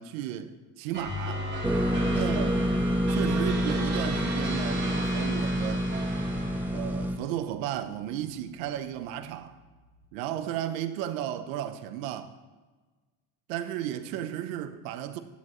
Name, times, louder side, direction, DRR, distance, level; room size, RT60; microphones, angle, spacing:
voice 1, 0.0-1.5 2.1-2.6 3.1-5.9 6.7-9.6 10.1-12.3 13.5-15.2, right 11 dB, 80° right, 0.8 m, -34 dB
sound 1, 0.9-7.2, right 2 dB, 30° right, 1.9 m, -37 dB
sound 2, 1.6-7.2, equal, 5° right, 0.5 m, -27 dB
sound 3, 8.5-10.0, left 3 dB, 70° left, 2.3 m, -44 dB
14.5 x 7.6 x 3.1 m
supercardioid pair, 105°, 39 cm